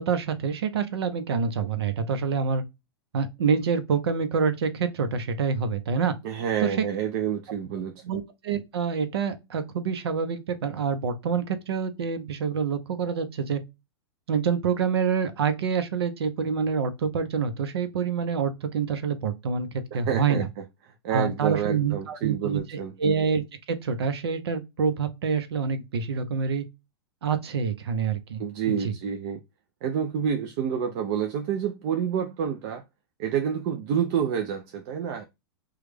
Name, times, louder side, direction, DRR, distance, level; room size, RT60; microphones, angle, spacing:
voice 1, 0.0-2.6 3.1-6.1 6.6-6.8 8.0-13.6 14.3-19.7 19.9-20.5 21.1-26.6 27.2-28.4 28.7-28.9, right 6 dB, 85° right, 0.7 m, -27 dB
voice 2, 6.2-8.0 19.9-23.0 28.4-29.4 29.8-32.8 33.2-35.2, right 8 dB, 50° right, 0.5 m, -28 dB
3.1 x 2.3 x 3.3 m
hypercardioid pair, 125°, 13 cm